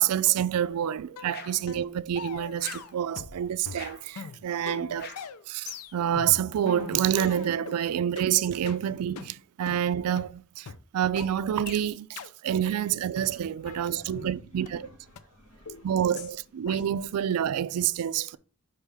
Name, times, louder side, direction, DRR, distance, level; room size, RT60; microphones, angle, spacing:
voice 1, 0.0-5.1 5.5-14.9 15.8-18.4, right 10 dB, 80° right, 0.3 m, -28 dB
sound 1, 1.2-1.3 1.7-1.9 2.2-3.4 3.6-7.8 8.2-8.3 8.7-8.8 9.2-9.3 9.7-9.8 10.2-10.3 10.7-10.8 11.2-11.3 11.7-11.8 12.2-12.3 12.7-12.8 13.1-14.3 14.7-14.8 15.2-15.3 15.7-15.8 16.2-16.3 16.7-16.8, left 6 dB, 90° left, 0.5 m, -41 dB
sound 2, 1.3-1.7 2.6-3.0 3.7-4.1 5.0-5.4, left 6 dB, 45° left, 0.7 m, -45 dB
voice 2, 13.5-16.1 17.7-17.8 18.3-18.4, equal, 65° left, 3.3 m, -54 dB
5.5 x 3.5 x 5.5 m
head